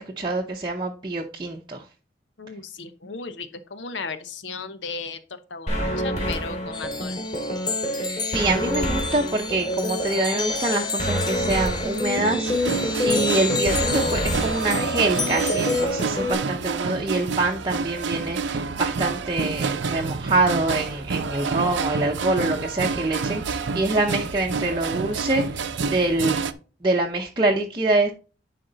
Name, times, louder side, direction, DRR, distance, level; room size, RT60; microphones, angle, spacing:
voice 1, 0.0-1.8 8.0-26.4 26.8-28.1, right 2 dB, 25° right, -1 dB, 0.7 m, -25 dB
voice 2, 2.4-7.2, left 4 dB, 85° left, 11 dB, 0.9 m, -35 dB
sound 1, 5.7-16.3, equal, 40° left, 2.4 m, -27 dB
sound 2, 6.7-15.9, left 4 dB, 25° left, 0.7 m, -31 dB
sound 3, 12.5-26.5, right 4 dB, 85° right, 0.6 m, -28 dB
10.5 x 4.3 x 4.0 m, 0.35 s
head